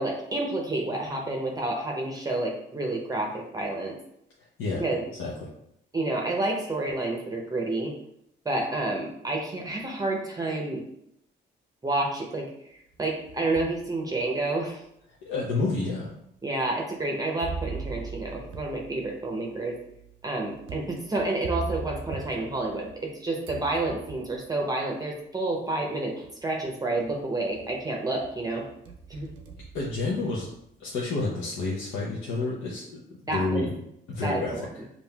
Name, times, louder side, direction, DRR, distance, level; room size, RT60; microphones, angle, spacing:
voice 1, 0.0-4.0 4.8-5.0 5.9-7.9 8.4-10.8 11.8-14.8 16.4-19.8 20.2-28.7 29.1-29.3 33.3-33.7 34.2-34.9, right 2 dB, 20° right, -1 dB, 0.6 m, -29 dB
voice 2, 5.1-5.5 15.2-16.1 29.7-30.5 30.8-33.7 34.1-34.7, left 3 dB, 85° left, -4 dB, 0.7 m, -29 dB
sound 1, 12.9-13.8 14.4-14.5 15.4-15.5 17.4-23.1 23.4-24.5 25.6-25.7 26.2-26.7 27.0-27.8 28.2-30.6, right 4 dB, 85° right, 0.6 m, -40 dB
5.3 x 2.5 x 2.3 m, 0.77 s
cardioid pair, 90°, 20 cm